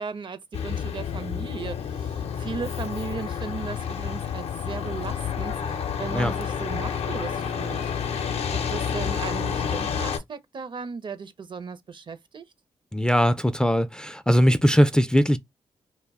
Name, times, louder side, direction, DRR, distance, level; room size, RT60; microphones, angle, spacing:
voice 1, 0.0-7.9 8.5-12.4, right 5 dB, 50° right, 0.5 m, -36 dB
Truck, 0.5-10.2, left 7 dB, 70° left, 0.5 m, -29 dB
voice 2, 12.9-15.4, equal, 5° left, 0.3 m, -20 dB
2.2 x 2.1 x 3.4 m
supercardioid pair, 45°, 11 cm